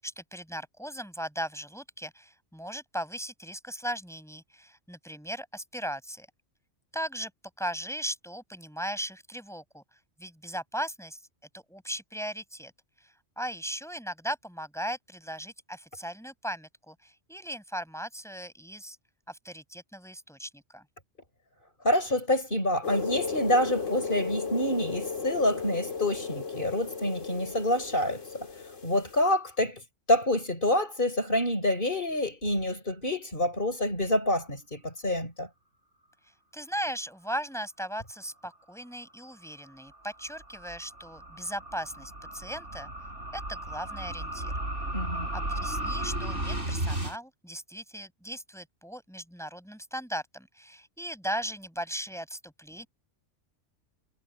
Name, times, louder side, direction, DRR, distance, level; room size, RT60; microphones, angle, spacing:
voice 1, 0.0-6.3 6.9-7.3 7.6-9.8 10.2-11.2 11.5-12.7 13.0-19.0 19.3-20.8 36.5-42.9 43.3-44.5 45.3-52.9, equal, ahead, 7.0 m, -37 dB
voice 2, 21.8-28.2 28.8-29.8 30.1-35.5 44.9-45.3, left 1 dB, 45° left, 5.4 m, -27 dB
sound 1, 22.8-29.2, left 5 dB, 85° left, 2.6 m, -35 dB
sound 2, 39.3-47.2, right 1 dB, 75° right, 7.5 m, -35 dB
omnidirectional pair, 1.3 m